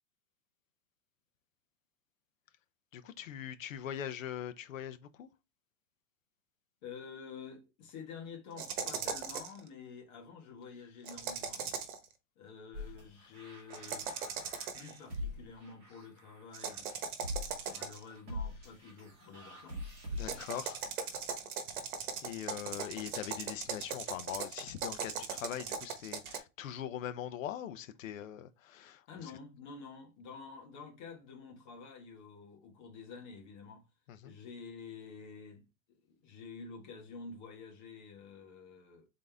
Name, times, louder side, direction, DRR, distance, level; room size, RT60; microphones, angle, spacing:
voice 1, 2.9-5.3 20.2-21.1 22.2-29.3 34.1-34.3, left 10 dB, 65° left, 0.8 m, -42 dB
voice 2, 6.8-11.7 12.4-14.2 14.7-16.9 17.7-20.4 29.1-33.8 34.2-39.1, left 5 dB, 35° left, 1.3 m, -49 dB
sound 1, 8.6-9.6 11.0-12.0 13.7-15.0 16.5-18.1 20.2-26.4, right 6 dB, 85° right, 1.2 m, -39 dB
sound 2, 12.7-20.6, left 1 dB, 20° right, 1.8 m, -43 dB
4.0 x 3.7 x 3.3 m
supercardioid pair, 180°, 42 cm